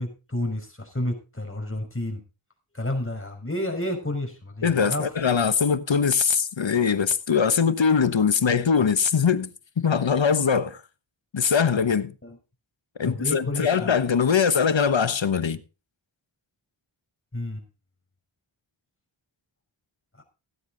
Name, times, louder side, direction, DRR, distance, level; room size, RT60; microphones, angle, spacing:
voice 1, 0.0-2.2 2.7-5.0 13.0-13.9 17.3-17.6, left 1 dB, 25° left, 5.2 m, -30 dB
voice 2, 4.6-9.5 9.8-10.8 11.3-12.1 13.0-15.6, left 6 dB, 70° left, 1.1 m, -22 dB
17.0 x 9.5 x 3.9 m
wide cardioid pair, 55°, 47 cm